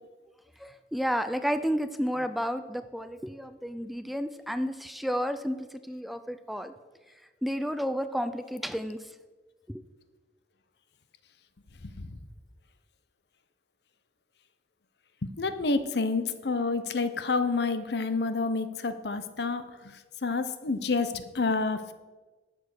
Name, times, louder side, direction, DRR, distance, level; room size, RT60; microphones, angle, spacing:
voice 1, 0.6-5.6 5.9-6.7 7.4-9.0 9.7-9.8, equal, ahead, 10 dB, 0.4 m, -31 dB
voice 2, 15.2-19.6 20.2-21.9, left 3 dB, 70° left, 11 dB, 0.8 m, -28 dB
12.0 x 7.1 x 6.2 m, 1.3 s
head